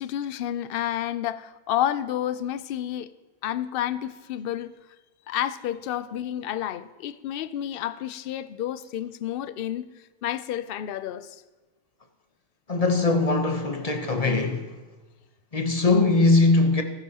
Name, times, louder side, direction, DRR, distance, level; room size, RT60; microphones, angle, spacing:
voice 1, 0.0-3.1 3.4-4.7 5.3-9.9 10.2-11.4, left 11 dB, 60° left, 0.6 m, -30 dB
voice 2, 12.7-14.7 15.5-16.8, left 3 dB, 35° left, 0.9 m, -21 dB
19.0 x 11.0 x 2.9 m
omnidirectional pair, 1.3 m